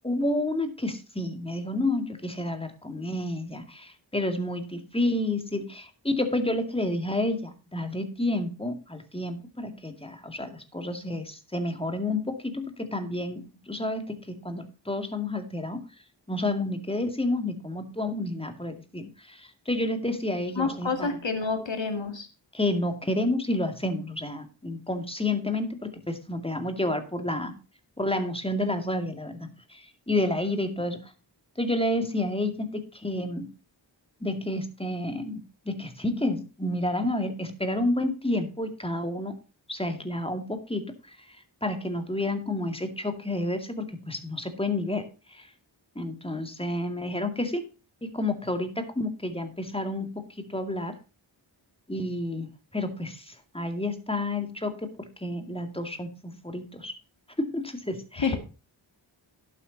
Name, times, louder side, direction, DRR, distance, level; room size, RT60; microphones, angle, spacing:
voice 1, 0.0-15.8 16.3-21.2 22.5-27.5 28.0-31.1 31.6-33.5 34.2-39.4 39.7-45.5 46.0-47.6 48.0-50.9 51.9-52.5 52.7-56.9 57.4-58.4, left 1 dB, 10° left, 7 dB, 2.2 m, -30 dB
voice 2, 20.6-22.3 58.2-58.4, left 4 dB, 70° left, 6 dB, 2.4 m, -28 dB
11.5 x 8.3 x 4.0 m, 0.32 s
wide cardioid pair, 55°, 46 cm